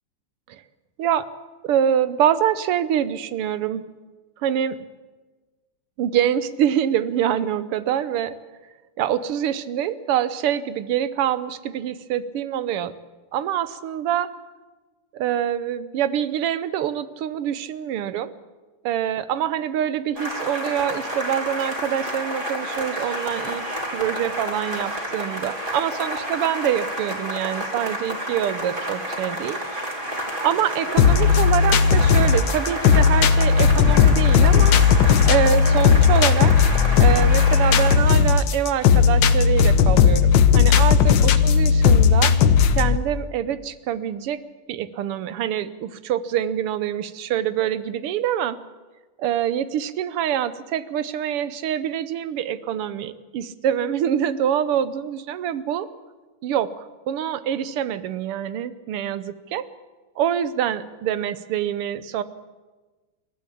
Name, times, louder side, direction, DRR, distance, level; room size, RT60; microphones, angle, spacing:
voice 1, 1.6-3.8 4.4-4.9 6.0-8.4 9.0-12.9 13.3-14.3 15.1-18.3 18.8-23.7 23.9-29.6 30.4-34.8 35.3-36.5 37.0-42.3 42.8-44.4 44.7-48.6 49.2-55.9 56.4-59.7 60.2-62.2, right 10 dB, 90° right, 15 dB, 1.9 m, -25 dB
sound 1, 20.2-38.0, equal, 20° right, 3.2 m, -30 dB
sound 2, 31.0-43.0, left 6 dB, 60° left, 1.5 m, -16 dB
28.0 x 12.5 x 8.5 m, 1.3 s
omnidirectional pair, 2.4 m